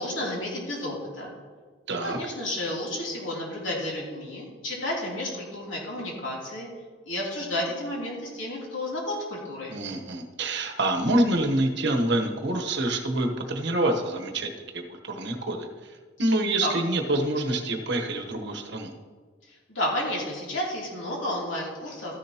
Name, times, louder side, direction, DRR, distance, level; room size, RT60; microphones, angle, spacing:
voice 1, 0.0-1.3 2.0-6.7 7.1-9.7 16.6-16.7 19.5-22.2, left 1 dB, 80° left, -3 dB, 3.1 m, -31 dB
voice 2, 1.9-2.2 9.7-15.7 16.2-18.9, right 1 dB, 65° right, 4 dB, 1.1 m, -26 dB
13.5 x 10.0 x 2.9 m, 1.5 s
head